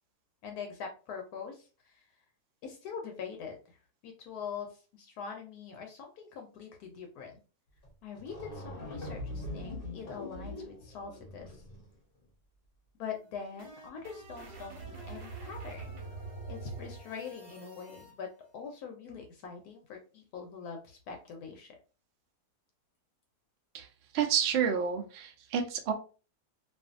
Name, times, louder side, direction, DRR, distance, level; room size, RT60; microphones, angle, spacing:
voice 1, 0.4-2.1 2.6-7.4 8.0-11.6 13.0-16.1 16.5-21.8, left 6 dB, 75° left, 3 dB, 1.1 m, -43 dB
sound 1, 7.8-7.9 8.1-11.9, left 2 dB, 45° left, 0.8 m, -42 dB
sound 2, 13.1-18.1, right 3 dB, 50° right, 1.0 m, -45 dB
voice 2, 24.1-25.9, right 7 dB, 75° right, 4 dB, 0.5 m, -29 dB
2.5 x 2.5 x 2.4 m, 0.35 s
omnidirectional pair, 1.7 m